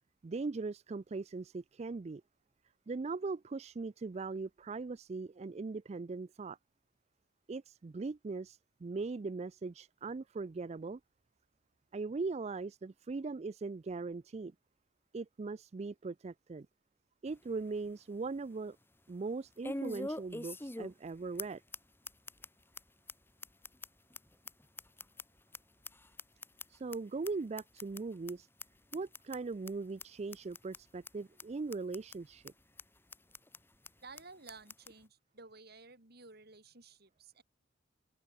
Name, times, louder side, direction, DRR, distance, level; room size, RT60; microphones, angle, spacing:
voice 1, 0.2-2.2 2.9-6.6 7.5-11.0 11.9-14.5 15.1-16.7 17.2-18.8 19.1-21.6 26.7-28.5 28.9-32.5, right 3 dB, 35° right, 0.4 m, -40 dB
sound 1, 17.3-17.4 17.8-17.9 19.6-21.1 21.4-21.5 21.7-21.8 22.0-22.5 22.7-22.8 23.1-23.2 23.4-25.6 25.8-27.0 27.2-27.3 27.6-28.0 28.3-28.4 28.6-28.7 28.9-29.4 29.7-29.8 30.0-30.1 30.3-30.8 31.0-31.1 31.4-31.5 31.7-32.2 32.5-32.6 32.8-32.9 33.1-33.6 33.8-33.9 34.2-34.3 34.5-34.9, left 2 dB, 10° left, 1.8 m, -43 dB
voice 2, 34.0-37.4, right 3 dB, 55° right, 4.5 m, -54 dB
head